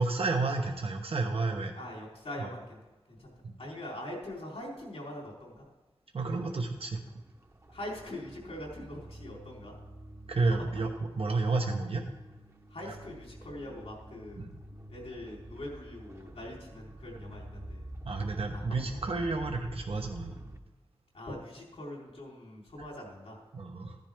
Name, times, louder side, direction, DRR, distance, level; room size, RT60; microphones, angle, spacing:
voice 1, 0.0-1.7 2.4-2.5 3.4-3.5 6.1-7.0 10.3-10.9 11.2-12.0 14.4-14.5 18.0-20.3 23.5-24.0, right 3 dB, 70° right, 2 dB, 1.0 m, -31 dB
voice 2, 1.7-2.8 3.1-3.3 3.6-5.6 7.7-9.7 10.6-10.8 12.7-14.4 14.9-17.9 18.5-19.0 21.1-23.4, left 1 dB, 90° left, -2 dB, 3.8 m, -43 dB
sound 1, 6.2-20.6, right 1 dB, 30° right, 0.9 m, -48 dB
15.0 x 10.5 x 3.5 m, 1.1 s
wide cardioid pair, 90°, 10 cm